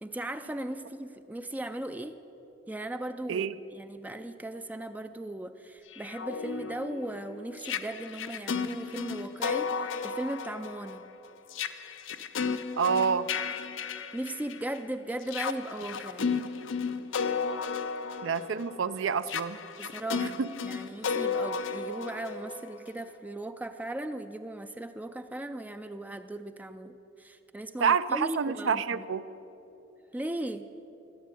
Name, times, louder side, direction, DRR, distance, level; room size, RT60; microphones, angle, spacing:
voice 1, 0.0-2.2 2.7-3.4 3.7-11.0 13.9-16.3 19.8-29.1 30.1-30.7, right 1 dB, 10° right, 9 dB, 0.3 m, -37 dB
sound 1, 5.9-14.8 15.2-23.0, left 5 dB, 75° left, 0.6 m, -34 dB
voice 2, 12.8-13.3 16.2-16.3 18.2-19.6 20.2-20.5 27.8-29.2, right 6 dB, 70° right, 14 dB, 0.5 m, -28 dB
13.5 x 8.5 x 8.3 m, 2.9 s
head